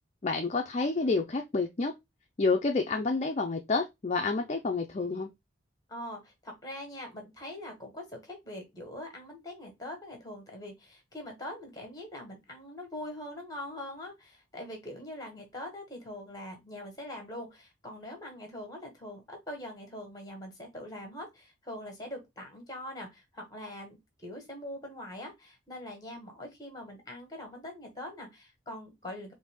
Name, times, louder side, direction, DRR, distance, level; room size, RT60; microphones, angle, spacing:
voice 1, 0.2-1.9 2.4-5.3, left 3 dB, 35° left, 0.4 m, -29 dB
voice 2, 5.9-29.3, left 1 dB, 20° left, 1.4 m, -43 dB
4.2 x 2.6 x 3.6 m
head